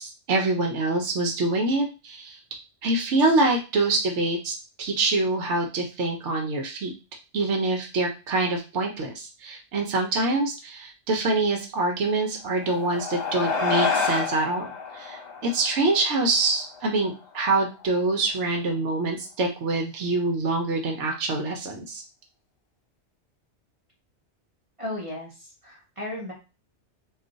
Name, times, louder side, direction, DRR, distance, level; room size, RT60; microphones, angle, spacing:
voice 1, 0.0-2.4 2.8-6.9 7.3-14.7 14.9-22.0, right 2 dB, 85° right, 2 dB, 1.0 m, -25 dB
sound 1, 12.5-17.2, left 5 dB, 40° left, 0.9 m, -29 dB
voice 2, 24.8-26.3, left 1 dB, 35° right, -3 dB, 0.7 m, -35 dB
2.4 x 2.3 x 3.8 m, 0.30 s
omnidirectional pair, 1.2 m